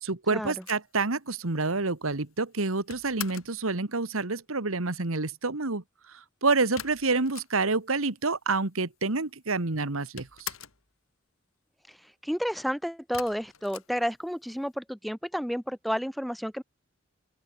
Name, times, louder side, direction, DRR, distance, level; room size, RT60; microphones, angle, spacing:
voice 1, 0.0-5.8 6.4-10.5, right 3 dB, 85° right, 1.7 m, -28 dB
sound 1, 0.6-3.6 6.8-7.9 8.2-8.3 8.5-9.3 9.6-10.9 13.1-14.6, left 10 dB, 90° left, 3.4 m, -43 dB
voice 2, 12.2-16.6, equal, ahead, 1.8 m, -31 dB
open air
head